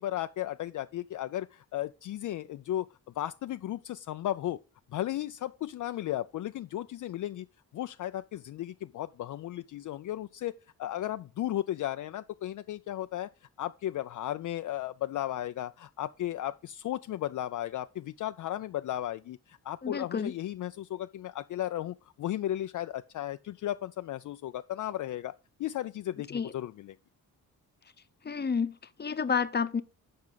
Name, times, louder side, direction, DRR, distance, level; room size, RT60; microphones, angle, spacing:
voice 1, 0.0-2.9 3.2-4.6 4.9-7.5 7.7-10.5 10.8-13.3 13.6-25.3 25.6-27.0, left 13 dB, 55° left, 0.4 m, -35 dB
voice 2, 19.8-20.3 26.3-26.5 28.2-29.8, left 6 dB, 25° left, 0.8 m, -30 dB
12.0 x 4.7 x 4.0 m
cardioid pair, 70°, 37 cm